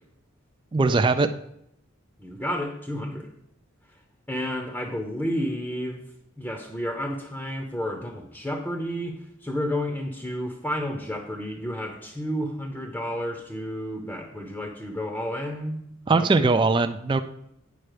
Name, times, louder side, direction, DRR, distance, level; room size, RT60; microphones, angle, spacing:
voice 1, 0.7-1.3 16.1-17.2, right 3 dB, 25° right, 9 dB, 0.3 m, -20 dB
voice 2, 2.2-3.4 4.3-6.0 6.4-16.4, equal, 5° left, 2 dB, 0.8 m, -31 dB
9.0 x 5.6 x 4.9 m, 0.78 s
head